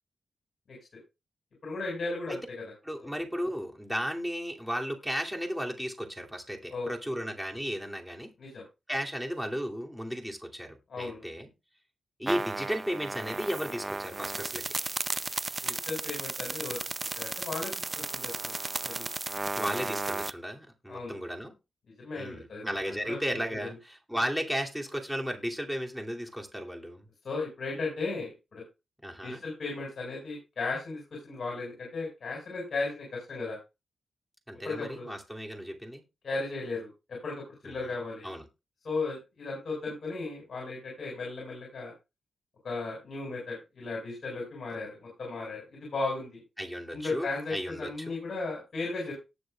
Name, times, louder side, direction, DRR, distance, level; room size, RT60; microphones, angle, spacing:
voice 1, 1.6-2.4 6.7-6.9 8.4-8.6 10.9-11.2 15.6-16.8 17.2-17.7 18.1-18.5 18.8-19.1 20.9-21.1 22.0-22.7 23.0-23.2 27.2-28.6 29.2-33.6 34.6-35.1 36.2-38.3 38.8-41.9 42.6-46.4 46.9-49.1, left 3 dB, 65° left, -2 dB, 5.5 m, -35 dB
voice 2, 2.8-8.3 8.9-11.5 12.2-14.6 19.6-21.5 22.2-27.1 29.0-29.4 34.5-36.0 37.6-38.0 38.2-38.4 46.6-48.2, equal, 5° right, 1 dB, 2.8 m, -35 dB
sound 1, 12.3-20.3, right 3 dB, 35° right, 0.5 m, -34 dB
18.5 x 6.5 x 2.4 m, 0.27 s
cardioid pair, 55°, 0 cm